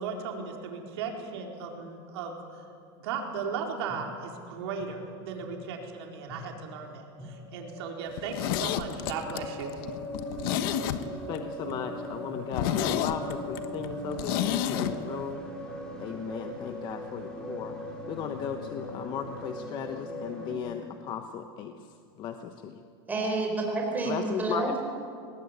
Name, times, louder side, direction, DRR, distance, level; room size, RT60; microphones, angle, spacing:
voice 1, 0.0-2.6 3.0-9.8, right 5 dB, 80° right, 1 dB, 4.5 m, -36 dB
sound 1, 3.9-4.0 4.8-4.9 5.4-5.5 6.1-20.5, equal, 5° left, 4.2 m, -40 dB
Zipper (clothing), 8.1-11.4 11.7-11.8 12.1-12.2 12.5-14.9 15.2-15.3, left 11 dB, 60° left, 1.3 m, -30 dB
voice 2, 11.3-15.4 16.0-17.8 18.1-22.8 24.0-24.8, left 8 dB, 35° left, 7 dB, 1.0 m, -36 dB
voice 3, 23.1-24.8, right 2 dB, 15° right, 0 dB, 4.9 m, -29 dB
22.5 x 19.5 x 9.6 m, 2.4 s
supercardioid pair, 160°, 13 cm